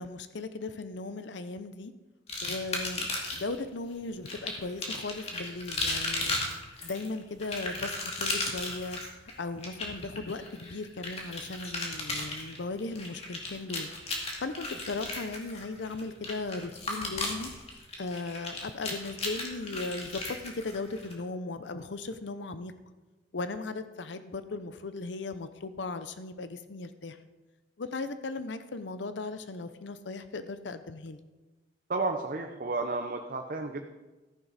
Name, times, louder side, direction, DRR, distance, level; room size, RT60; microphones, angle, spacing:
voice 1, 0.0-1.9 2.4-6.4 6.8-9.0 9.4-13.9 14.4-17.5 18.0-22.7 23.3-27.2 27.8-31.2, left 3 dB, 75° left, 11 dB, 0.7 m, -37 dB
sound 1, 2.3-3.6 4.3-21.1, left 2 dB, 35° left, 2.4 m, -35 dB
voice 2, 31.9-33.9, right 3 dB, 50° right, 4 dB, 0.7 m, -32 dB
14.0 x 10.5 x 4.1 m, 1.2 s
head